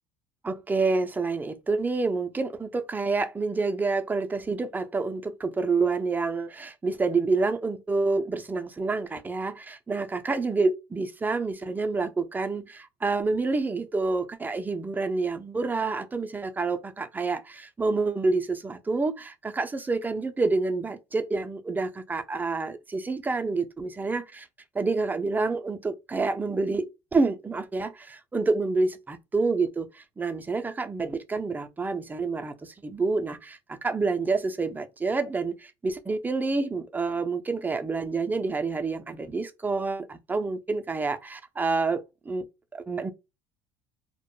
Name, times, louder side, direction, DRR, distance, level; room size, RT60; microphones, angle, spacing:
voice 1, 0.4-24.5 24.7-42.4 42.7-43.1, right 3 dB, 15° right, 0.4 m, -28 dB
2.1 x 2.1 x 3.0 m
hypercardioid pair, 80°, 13 cm